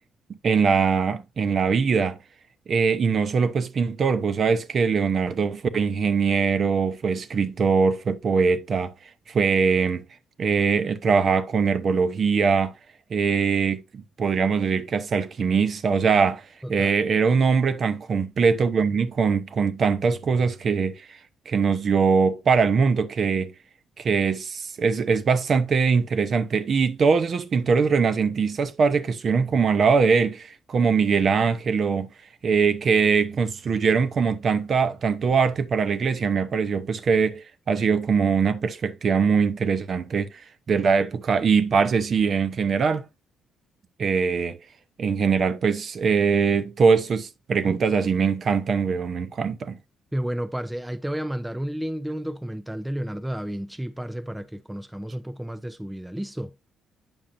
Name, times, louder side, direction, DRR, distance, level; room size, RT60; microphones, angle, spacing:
voice 1, 0.4-2.2 2.7-8.9 9.3-10.0 10.4-12.7 13.1-21.2 21.5-23.5 24.0-32.1 32.4-40.3 40.7-43.1 44.0-44.6 45.0-49.8, right 5 dB, 40° right, 0.7 m, -22 dB
voice 2, 50.1-56.5, equal, 5° right, 0.4 m, -31 dB
8.7 x 6.3 x 2.6 m
cardioid pair, 155°, 0 cm